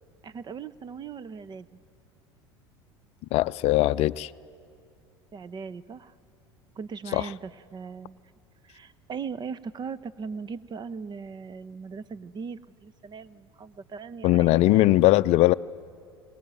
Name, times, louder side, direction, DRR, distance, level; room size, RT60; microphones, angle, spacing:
voice 1, 0.2-1.7 5.3-6.1 6.8-8.2 8.6-15.0, right 5 dB, 35° right, 17 dB, 0.9 m, -39 dB
voice 2, 3.3-4.3 7.1-7.2 14.2-15.5, left 16 dB, 55° left, 16 dB, 0.5 m, -20 dB
23.5 x 20.0 x 9.0 m, 2.5 s
hypercardioid pair, 80°, 13 cm